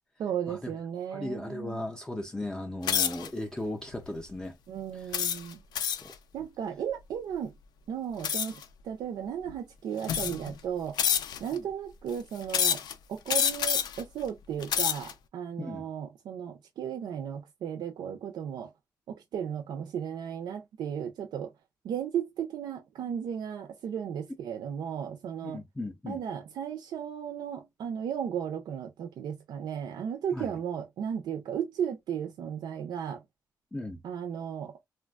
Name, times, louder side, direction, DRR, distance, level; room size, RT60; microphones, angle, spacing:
voice 1, 0.2-1.9 4.7-5.6 6.3-7.6 7.9-10.9 11.4-12.8 13.1-18.7 19.1-21.5 21.8-25.6 26.1-33.2 34.0-34.7, right 8 dB, 85° right, 0.5 m, -35 dB
voice 2, 1.1-4.6 4.9-5.1 6.0-6.1 11.6-11.7 15.6-15.9 25.4-26.2 30.3-30.5 33.7-34.0, left 1 dB, 10° left, 0.4 m, -37 dB
sound 1, 2.8-3.3 3.9-4.2 5.1-6.1 8.2-8.6 9.5-9.6 10.0-10.5 11.0-11.6 12.5-12.9 13.3-14.0 14.5-15.1, left 8 dB, 80° left, 0.4 m, -28 dB
3.2 x 2.2 x 2.3 m
wide cardioid pair, 150°, 7 cm